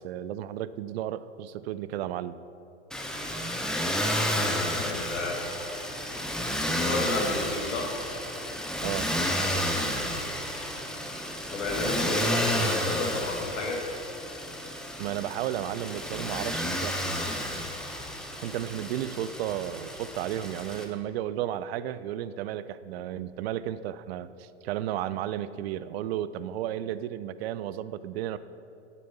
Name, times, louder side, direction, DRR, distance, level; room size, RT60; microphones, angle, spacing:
voice 1, 0.0-2.4 8.8-9.2 15.0-17.1 18.4-28.4, right 12 dB, 60° right, 15 dB, 0.4 m, -33 dB
Motor vehicle (road), 2.9-20.8, equal, ahead, 0.7 m, -31 dB
voice 2, 4.1-5.4 6.8-7.9 11.5-13.8, left 2 dB, 80° left, 0 dB, 1.8 m, -32 dB
9.2 x 7.0 x 4.2 m, 2.8 s
hypercardioid pair, 105°, 36 cm